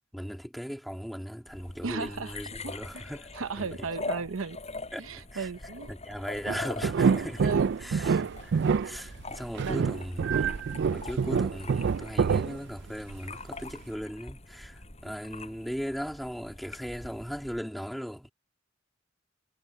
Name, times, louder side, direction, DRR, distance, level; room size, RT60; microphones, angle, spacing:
voice 1, 0.1-3.9 4.9-5.5 5.9-7.5 7.8-18.3, equal, ahead, 3.1 m, -38 dB
sound 1, 1.5-17.6, left 3 dB, 30° left, 6.4 m, -43 dB
voice 2, 1.8-2.4 2.6-3.0 3.3-4.6 5.0-5.9 7.4-7.8 8.0-8.2 9.6-9.9, right 4 dB, 75° right, 0.8 m, -35 dB
sound 2, 6.5-13.2 13.6-13.7, right 6 dB, 55° right, 0.4 m, -26 dB
head